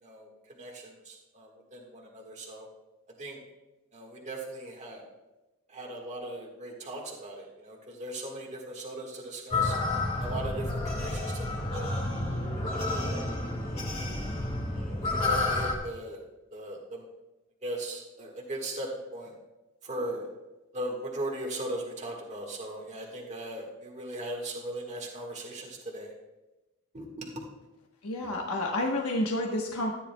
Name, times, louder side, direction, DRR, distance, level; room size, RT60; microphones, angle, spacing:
voice 1, 0.0-2.7 3.2-3.4 3.9-5.0 5.7-9.7 10.2-11.9 12.6-13.2 13.6-13.8 14.7-16.2 16.5-17.0 17.6-19.3 19.8-20.3 20.7-26.1 26.9-27.3, right 1 dB, 35° right, -1 dB, 1.6 m, -38 dB
sound 1, 9.5-15.8, left 2 dB, 30° left, 1.9 m, -30 dB
voice 2, 28.0-29.9, left 1 dB, 80° left, -1 dB, 1.1 m, -29 dB
13.5 x 10.0 x 2.2 m, 1.0 s
head